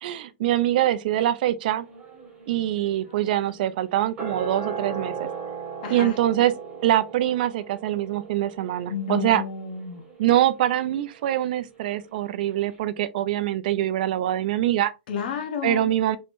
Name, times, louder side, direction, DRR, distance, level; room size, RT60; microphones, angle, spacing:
voice 1, 0.0-1.9 2.5-5.3 5.9-6.5 6.8-9.4 10.2-14.9 15.6-16.2, right 12 dB, 50° right, 0.5 m, -24 dB
sound 1, 1.7-12.1 12.4-12.5, right 5 dB, 20° right, 1.6 m, -39 dB
voice 2, 5.8-6.1 8.9-10.0 15.1-15.9, left 7 dB, 50° left, 0.9 m, -31 dB
3.5 x 3.1 x 2.5 m
hypercardioid pair, 160°, 6 cm